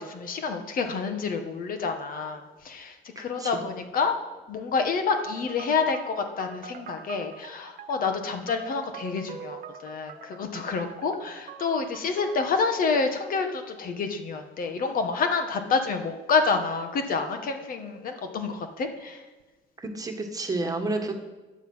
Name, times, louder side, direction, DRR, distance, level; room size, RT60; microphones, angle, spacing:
voice 1, 0.0-4.1 4.5-19.2, left 4 dB, 55° left, 6 dB, 1.6 m, -28 dB
voice 2, 3.1-3.5 19.8-21.2, right 2 dB, 20° right, 4 dB, 1.7 m, -30 dB
sound 1, 5.2-12.6, right 6 dB, 50° right, 1.2 m, -44 dB
14.0 x 10.0 x 5.7 m, 1.2 s
cardioid pair, 110°, 17 cm